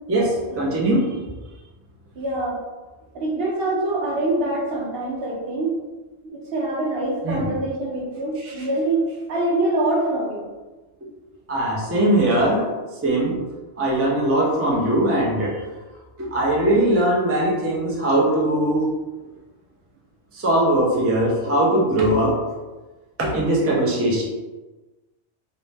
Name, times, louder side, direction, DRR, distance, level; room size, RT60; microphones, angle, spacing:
voice 1, 0.1-1.2 7.2-7.6 8.4-8.7 11.5-12.7 13.0-13.4 13.8-15.6 16.2-18.9 20.3-22.4 23.2-24.2, right 1 dB, 20° right, -4 dB, 0.4 m, -20 dB
voice 2, 2.2-2.6 3.1-5.8 6.2-10.4, right 2 dB, 65° right, -3 dB, 0.8 m, -24 dB
2.7 x 2.1 x 3.2 m, 1.2 s
omnidirectional pair, 1.1 m